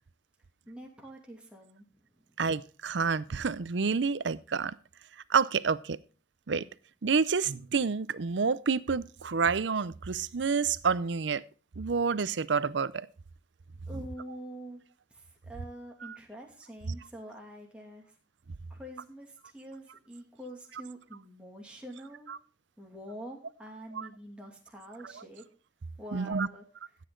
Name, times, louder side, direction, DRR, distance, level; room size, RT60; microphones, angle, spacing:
voice 1, 0.7-2.0 13.9-14.8 15.1-18.1 18.7-22.3 22.8-25.4 26.0-26.6, equal, 5° right, 2.6 m, -46 dB
voice 2, 2.4-4.7 5.3-6.0 6.5-6.6 7.0-11.4 11.8-13.1 16.0-16.2 23.9-24.1 26.1-26.5, right 5 dB, 80° right, 0.6 m, -28 dB
14.5 x 8.5 x 3.8 m
head